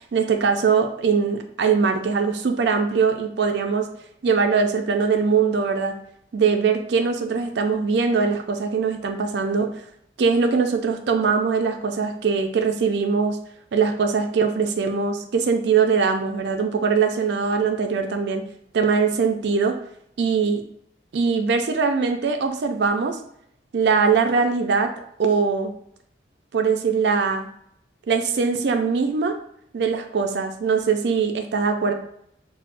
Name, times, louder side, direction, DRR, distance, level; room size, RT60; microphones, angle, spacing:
voice 1, 0.1-3.9 4.2-6.0 6.3-9.7 10.2-13.4 13.7-18.4 18.7-19.8 20.2-20.6 21.1-23.2 23.7-24.9 25.2-25.7 26.5-27.5 28.1-29.4 29.7-31.9, right 5 dB, 65° right, 5 dB, 0.4 m, -21 dB
5.9 x 2.0 x 2.5 m, 0.68 s
head